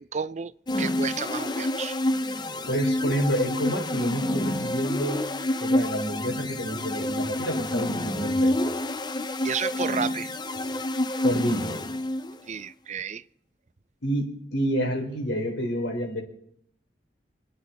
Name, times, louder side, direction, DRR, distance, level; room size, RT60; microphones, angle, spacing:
voice 1, 0.0-2.0 9.4-10.3 12.5-13.2, right 6 dB, 40° right, 0.5 m, -32 dB
sound 1, 0.7-12.4, left 1 dB, 25° left, 0.6 m, -28 dB
voice 2, 2.7-5.2 5.6-8.6 11.2-11.7 14.0-16.2, equal, 85° left, 3.8 m, -28 dB
26.0 x 9.4 x 4.2 m
head